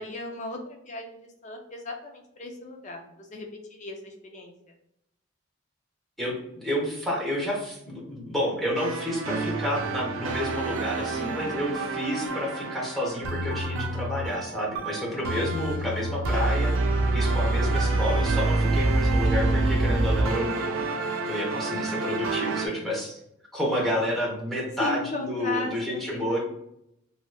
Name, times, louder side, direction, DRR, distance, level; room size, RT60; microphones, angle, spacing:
voice 1, 0.0-4.5 11.2-11.8 15.1-15.9 23.6-23.9 24.8-26.4, left 2 dB, 35° left, 2 dB, 0.5 m, -37 dB
voice 2, 6.6-16.8 17.1-20.8 21.3-23.2 23.5-26.4, equal, ahead, -4 dB, 0.8 m, -30 dB
sound 1, 8.8-22.7, right 2 dB, 75° right, 0.4 m, -27 dB
3.1 x 2.9 x 2.3 m, 0.79 s
head